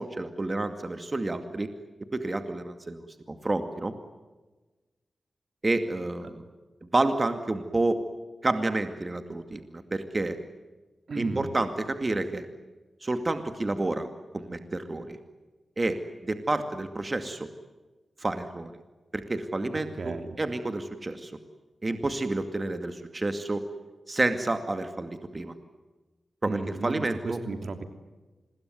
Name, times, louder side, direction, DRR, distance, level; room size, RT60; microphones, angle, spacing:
voice 1, 0.0-1.7 2.1-3.9 5.6-6.4 6.9-8.0 8.4-10.4 11.2-12.5 13.0-14.1 14.3-15.2 15.8-17.5 18.2-18.7 19.1-21.3 21.8-23.7 24.1-25.5 26.4-27.4, right 2 dB, 35° right, 7 dB, 2.3 m, -29 dB
voice 2, 11.1-11.5 20.0-20.3 26.4-27.8, right 3 dB, 70° right, 6 dB, 3.1 m, -34 dB
26.5 x 21.5 x 9.4 m, 1.2 s
cardioid pair, 55°, 0 cm